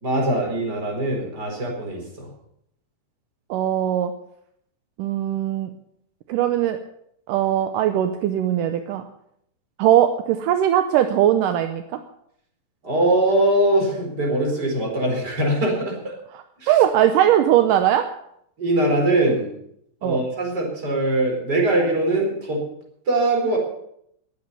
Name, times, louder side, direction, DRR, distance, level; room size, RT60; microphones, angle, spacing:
voice 1, 0.0-2.3 12.8-16.1 16.6-16.8 18.6-19.5 20.0-22.6 23.1-23.6, right 1 dB, 30° right, 0 dB, 4.8 m, -22 dB
voice 2, 3.5-4.1 5.0-5.7 6.3-6.8 7.3-9.0 9.8-12.0 16.7-18.1 20.0-20.2, right 11 dB, 80° right, 8 dB, 2.3 m, -20 dB
19.5 x 8.4 x 6.9 m, 0.73 s
omnidirectional pair, 3.8 m